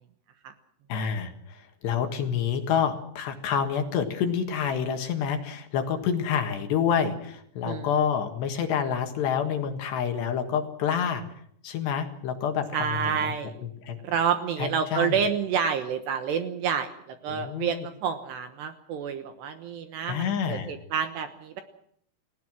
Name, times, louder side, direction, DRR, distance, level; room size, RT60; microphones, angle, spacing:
voice 1, 0.9-11.2 11.6-13.3 13.6-14.0 14.6-15.1 17.3-17.7 20.1-20.7, left 7 dB, 65° left, 6 dB, 3.4 m, -28 dB
voice 2, 12.7-13.6 14.0-21.6, right 7 dB, 70° right, 8 dB, 2.8 m, -29 dB
29.5 x 17.5 x 6.2 m, 0.69 s
omnidirectional pair, 6.0 m